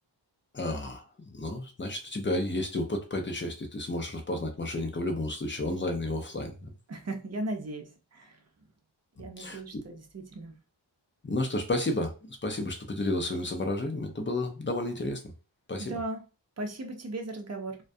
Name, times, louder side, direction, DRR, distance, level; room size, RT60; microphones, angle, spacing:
voice 1, 0.5-6.7 9.4-9.6 11.2-15.3 15.7-16.0, left 1 dB, 25° left, 4 dB, 0.6 m, -32 dB
voice 2, 6.9-8.4 9.2-10.5 15.8-16.2 16.6-17.8, right 2 dB, 35° right, 4 dB, 0.6 m, -37 dB
2.3 x 2.2 x 2.6 m, 0.32 s
wide cardioid pair, 60°, 46 cm